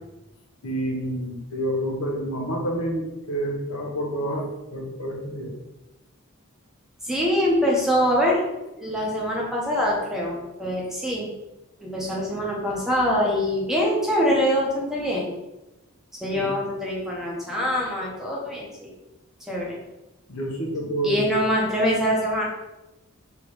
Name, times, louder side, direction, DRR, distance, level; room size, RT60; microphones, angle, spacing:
voice 1, 0.6-5.6 16.3-16.5 20.3-21.3, right 1 dB, 85° left, 1 dB, 0.9 m, -28 dB
voice 2, 7.0-8.4 8.8-11.3 11.8-15.3 16.2-18.9 19.5-19.8 21.0-22.4, equal, ahead, -4 dB, 0.8 m, -24 dB
3.4 x 2.9 x 4.7 m, 0.98 s
head